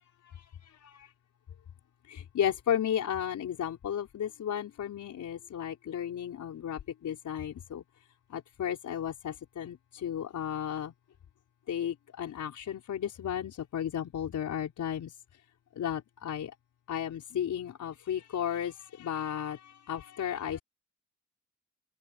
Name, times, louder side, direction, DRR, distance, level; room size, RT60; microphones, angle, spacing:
voice 1, 0.2-1.1 2.1-7.8 8.3-10.9 11.7-15.1 15.7-16.5 16.9-20.6, left 9 dB, 85° left, 4.9 m, -34 dB
cardioid pair, 85°, 29 cm